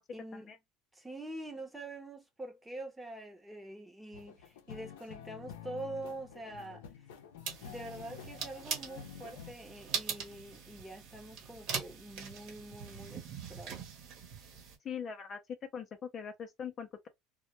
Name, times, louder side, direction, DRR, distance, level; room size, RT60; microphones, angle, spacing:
voice 1, 0.1-0.5 0.9-6.9 7.6-13.8, right 2 dB, 5° right, 0.7 m, -45 dB
sound 1, 4.1-9.5, left 8 dB, 90° left, 0.5 m, -49 dB
sound 2, 7.4-14.8, right 6 dB, 65° right, 0.9 m, -42 dB
voice 2, 14.8-15.4 15.7-17.1, left 7 dB, 40° left, 0.4 m, -41 dB
2.1 x 2.1 x 2.8 m
supercardioid pair, 105°, 0 cm